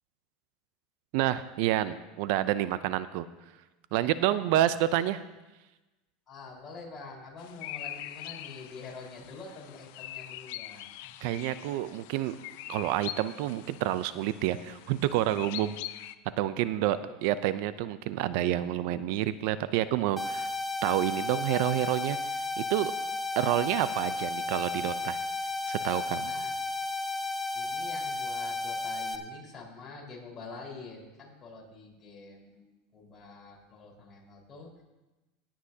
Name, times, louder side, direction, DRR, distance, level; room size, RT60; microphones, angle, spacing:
voice 1, 1.1-3.2 3.9-5.2 11.2-12.4 12.7-15.8 16.4-20.5 20.8-22.2 22.6-22.9 23.4-25.2 25.7-26.3, right 13 dB, 65° right, 14 dB, 0.5 m, -28 dB
voice 2, 6.3-11.1 17.0-17.1 26.3-26.5 27.5-34.8, left 3 dB, 30° left, -3 dB, 4.4 m, -46 dB
sound 1, 7.4-16.1, left 15 dB, 70° left, 0.5 m, -43 dB
sound 2, 20.2-29.2, left 3 dB, 10° left, 1.0 m, -33 dB
19.0 x 8.6 x 2.8 m, 1.1 s
supercardioid pair, 120°, 0 cm